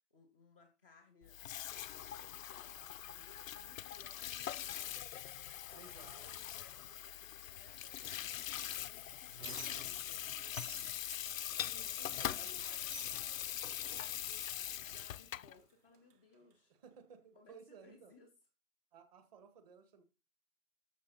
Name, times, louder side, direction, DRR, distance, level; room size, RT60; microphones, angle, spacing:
voice 1, 0.1-4.9 5.7-10.6 11.8-16.7 17.3-18.3, left 3 dB, 10° right, -4 dB, 0.5 m, -64 dB
Water tap faucet / Sink (filling or washing), 1.2-15.5, left 11 dB, 65° left, 0.5 m, -42 dB
voice 2, 5.7-6.2 11.6-12.6 16.8-18.1 18.9-20.0, right 5 dB, 25° right, 9 dB, 1.8 m, -57 dB
Squeak, 8.5-10.3 10.5-12.2 12.6-14.3 15.1-15.2 15.5-16.6, right 7 dB, 80° right, 1.2 m, -55 dB
12.5 x 7.2 x 4.1 m, 0.30 s
hypercardioid pair, 160°, 45 cm